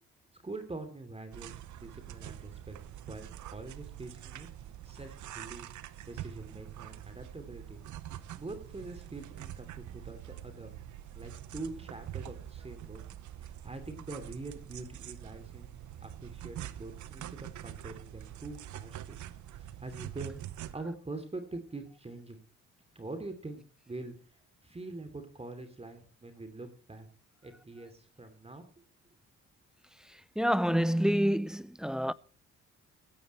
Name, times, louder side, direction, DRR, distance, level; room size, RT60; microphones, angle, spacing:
voice 1, 0.4-2.8 3.1-4.5 4.8-5.7 6.1-7.8 8.4-10.7 11.1-13.0 13.4-15.7 16.0-19.2 19.5-22.4 22.9-24.1 24.6-27.1 27.4-28.6, right 2 dB, 20° right, 3.0 m, -44 dB
sound 1, 1.3-20.7, right 11 dB, 75° right, 1.0 m, -45 dB
voice 2, 30.4-32.1, equal, ahead, 0.5 m, -27 dB
15.5 x 14.5 x 3.2 m
cardioid pair, 90°, 30 cm